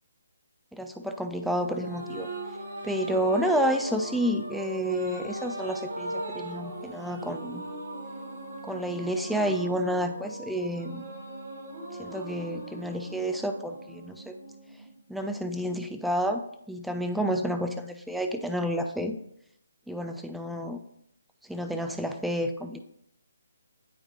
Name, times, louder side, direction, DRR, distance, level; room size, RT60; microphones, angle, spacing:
voice 1, 0.7-2.3 2.8-7.6 8.6-11.0 12.0-14.4 15.1-16.4 16.7-19.2 19.9-20.8 21.5-22.8, equal, ahead, 5 dB, 0.3 m, -30 dB
sound 1, 1.6-15.2, right 1 dB, 50° right, 1.8 m, -38 dB
8.8 x 4.3 x 2.5 m, 0.74 s
figure-of-eight pair, 140°, 0 cm